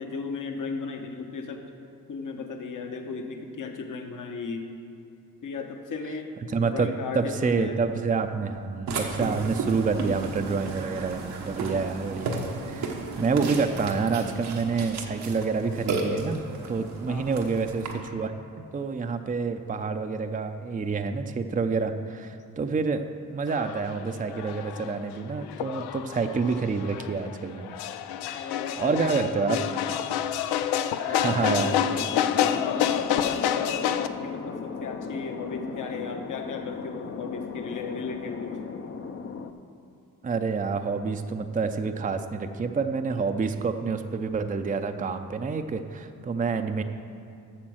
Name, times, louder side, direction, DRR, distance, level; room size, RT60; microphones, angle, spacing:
voice 1, 0.0-1.7 2.1-4.7 5.4-6.3 6.7-7.8 17.1-17.6 28.3-29.8 31.0-38.6, left 4 dB, 55° left, 4 dB, 1.1 m, -36 dB
voice 2, 6.5-16.4 16.7-18.3 18.7-23.0 23.3-27.8 28.3-28.5 28.8-29.6 31.1-31.8 40.2-46.8, right 4 dB, 20° right, 7 dB, 0.6 m, -28 dB
Burping eructation, 8.9-17.9, right 3 dB, 80° right, 1.3 m, -33 dB
sound 1, 23.5-34.1, left 10 dB, 85° left, 0.5 m, -29 dB
Thunder, 31.4-39.5, left 5 dB, 35° left, 0.7 m, -37 dB
8.7 x 6.9 x 6.2 m, 2.6 s
supercardioid pair, 55°, 38 cm